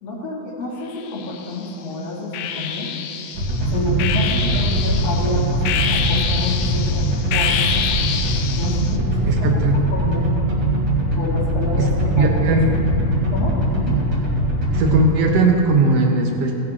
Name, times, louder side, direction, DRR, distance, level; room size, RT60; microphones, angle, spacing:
voice 1, 0.0-2.9 3.6-7.1 7.3-7.9 8.6-9.3 9.7-10.3 11.1-12.4 13.3-14.0, left 2 dB, 60° left, -8 dB, 2.8 m, -29 dB
sound 1, 1.0-1.7 2.3-9.0, left 8 dB, 75° left, 1.7 m, -26 dB
sound 2, 3.3-15.0, right 1 dB, 40° right, 3.5 m, -21 dB
voice 2, 9.3-9.8 11.8-11.9 12.2-12.8 14.7-16.5, right 2 dB, 65° right, 1 dB, 2.0 m, -18 dB
18.5 x 10.0 x 2.8 m, 3.0 s
omnidirectional pair, 3.4 m